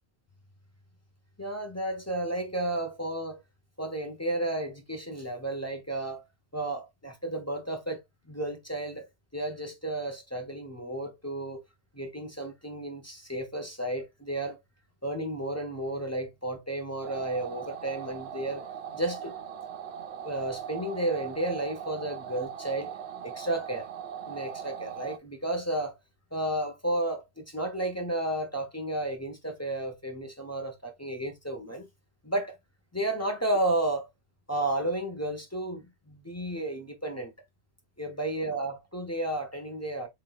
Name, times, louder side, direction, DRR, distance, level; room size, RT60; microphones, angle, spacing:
voice 1, 1.4-3.4 3.8-6.2 6.5-9.1 9.3-11.6 11.9-14.6 15.0-18.7 18.9-19.4 20.2-22.9 23.2-23.9 24.3-25.9 26.3-31.9 32.2-32.6 32.9-34.1 34.5-37.3 38.0-40.1, right 1 dB, 15° left, 0.9 m, -32 dB
sound 1, 17.0-25.2, right 8 dB, 75° right, 0.9 m, -40 dB
4.0 x 3.9 x 2.4 m
omnidirectional pair, 1.2 m